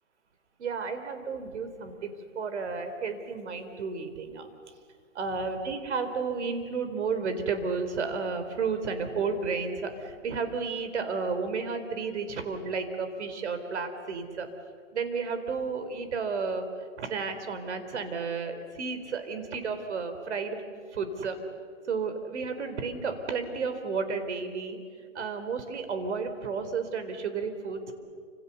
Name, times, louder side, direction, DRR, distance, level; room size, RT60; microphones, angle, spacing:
voice 1, 0.6-4.5 5.1-14.5 14.9-20.6 20.9-21.4 21.9-24.8 25.1-27.9, right 5 dB, 65° right, 8 dB, 4.0 m, -32 dB
29.0 x 27.0 x 7.0 m, 2.1 s
hypercardioid pair, 165°, 37 cm